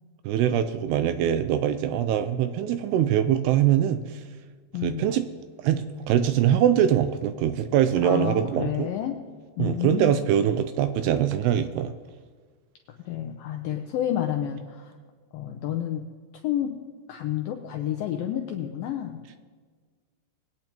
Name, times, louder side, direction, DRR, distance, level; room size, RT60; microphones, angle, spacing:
voice 1, 0.3-4.2 4.8-5.3 5.6-8.9 9.6-11.9, right 10 dB, 85° right, 10 dB, 2.4 m, -23 dB
voice 2, 4.7-5.1 8.0-9.2 9.6-10.3 13.1-14.9 15.3-16.1 16.4-16.8 17.1-19.2, left 11 dB, 85° left, 3 dB, 2.0 m, -30 dB
21.5 x 9.2 x 3.0 m, 1.5 s
omnidirectional pair, 5.0 m